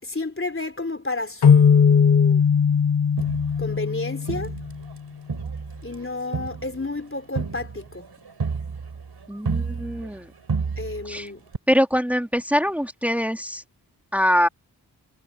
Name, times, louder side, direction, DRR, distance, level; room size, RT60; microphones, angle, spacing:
voice 1, 0.0-2.5 3.6-4.5 5.8-8.2 10.8-11.5, left 2 dB, 35° left, 3.7 m, -30 dB
sound 1, 1.4-4.9, left 7 dB, 80° left, 1.3 m, -19 dB
Crowd, 3.2-5.0 5.3-10.2 10.5-11.2 11.5-11.6, right 5 dB, 80° right, 5.1 m, -31 dB
voice 2, 9.3-10.3 11.0-11.3 11.7-13.6 14.1-14.5, equal, 5° right, 3.0 m, -23 dB
cardioid pair, 40°, 39 cm